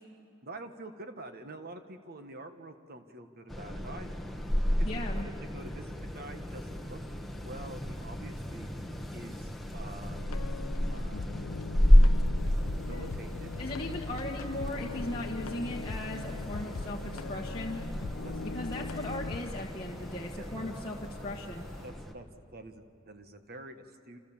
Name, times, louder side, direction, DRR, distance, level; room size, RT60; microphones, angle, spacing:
voice 1, 0.4-4.3 4.8-7.0 7.4-8.7 9.1-10.2 10.9-11.3 12.9-13.5 18.1-18.5 20.4-20.7 21.8-22.3 22.5-24.2, right 2 dB, 45° right, 7 dB, 1.5 m, -47 dB
sound 1, 3.5-22.1, equal, ahead, 1.5 m, -31 dB
voice 2, 4.8-5.3 13.6-17.8 18.5-21.0 21.2-21.7, left 1 dB, 25° left, -2 dB, 1.7 m, -38 dB
sound 2, 10.0-19.4, left 3 dB, 85° left, 0.6 m, -40 dB
sound 3, 12.3-21.9, equal, 15° right, 5.0 m, -52 dB
30.0 x 27.0 x 7.4 m, 2.5 s
head